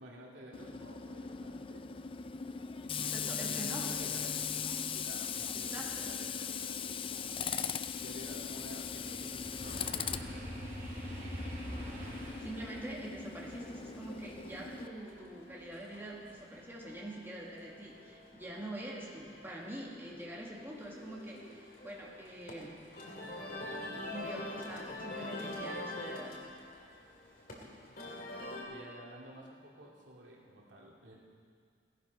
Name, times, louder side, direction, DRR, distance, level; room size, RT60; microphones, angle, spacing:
voice 1, 0.0-1.8 2.9-7.2 8.0-10.7 28.0-28.2 28.7-31.1, equal, 85° right, -3 dB, 2.4 m, -51 dB
Tools, 0.5-14.9, left 6 dB, 30° left, 0.4 m, -39 dB
voice 2, 3.0-3.9 5.6-6.2 12.0-12.1 12.4-22.8 24.1-26.4, right 1 dB, 15° right, -4 dB, 1.9 m, -45 dB
sound 1, 6.6-15.7 16.1-16.5, equal, 50° right, 3.1 m, -47 dB
sound 2, 13.5-28.6, left 1 dB, 55° left, 2.3 m, -46 dB
16.5 x 11.5 x 5.3 m, 2.2 s
head